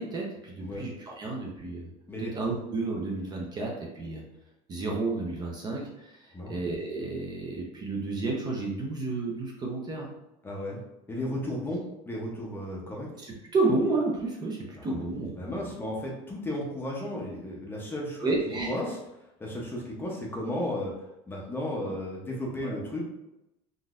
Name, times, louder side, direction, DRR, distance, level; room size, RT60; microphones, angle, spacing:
voice 1, 0.0-1.9 2.2-4.2 4.7-10.1 13.2-15.7 18.2-18.7 22.6-22.8, right 3 dB, 25° right, -1 dB, 0.6 m, -31 dB
voice 2, 10.4-10.8 11.1-13.1 14.7-15.0 15.4-18.3 18.7-19.0 19.4-20.9 21.3-23.0, left 1 dB, 15° left, -3 dB, 0.6 m, -34 dB
3.7 x 2.6 x 2.4 m, 0.90 s
cardioid pair, 145°, 16 cm